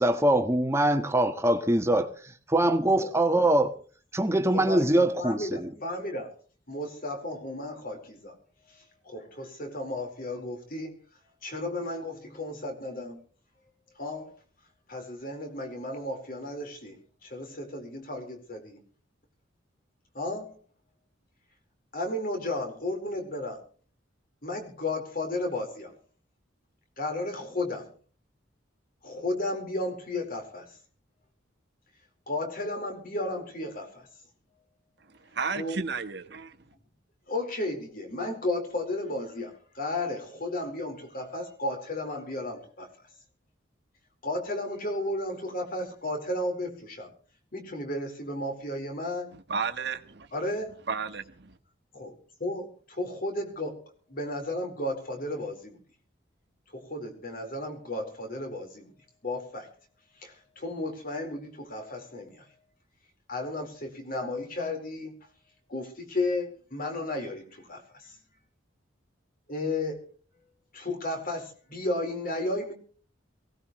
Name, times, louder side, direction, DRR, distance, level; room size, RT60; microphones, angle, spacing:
voice 1, 0.0-2.1 2.5-3.7 4.1-5.7, right 1 dB, 15° right, 1.3 m, -23 dB
voice 2, 4.5-4.9 5.2-6.3 6.7-8.3 8.7-11.0 11.4-13.2 14.0-14.3 14.9-18.8 20.1-20.6 21.9-23.6 24.4-25.9 27.0-27.9 29.0-30.8 32.3-34.1 35.5-35.8 37.3-42.9 44.2-47.1 47.5-49.3 50.3-50.8 51.9-53.8 54.1-55.8 56.7-58.9 59.2-59.7 60.2-62.5 63.3-65.1 65.7-68.2 69.5-70.0 70.7-72.7, left 2 dB, 50° left, 4.4 m, -33 dB
voice 3, 35.3-36.6 49.3-50.3 50.9-51.6, right 5 dB, 60° right, 1.4 m, -33 dB
22.5 x 17.5 x 3.2 m
head